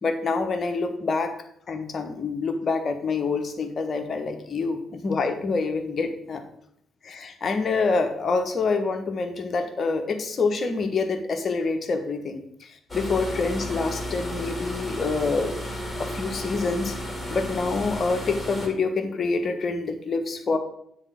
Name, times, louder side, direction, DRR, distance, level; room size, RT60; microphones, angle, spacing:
voice 1, 0.0-1.3 1.7-6.4 7.0-15.5 16.0-17.0 17.3-20.6, left 4 dB, 45° left, 6 dB, 1.3 m, -26 dB
sound 1, 12.9-18.7, equal, 15° left, 2.6 m, -33 dB
9.7 x 4.4 x 6.4 m, 0.70 s
figure-of-eight pair, 40°, 0 cm